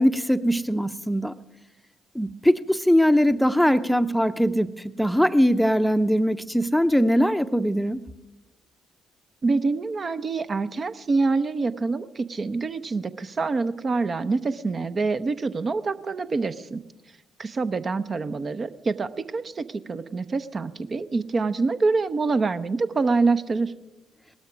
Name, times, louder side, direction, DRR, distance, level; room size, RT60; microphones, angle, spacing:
voice 1, 0.0-1.3 2.1-8.0, equal, ahead, 12 dB, 0.7 m, -21 dB
voice 2, 9.4-16.8 17.4-23.7, right 3 dB, 35° right, 12 dB, 0.7 m, -26 dB
19.0 x 12.5 x 5.1 m, 1.0 s
figure-of-eight pair, 45°, 0 cm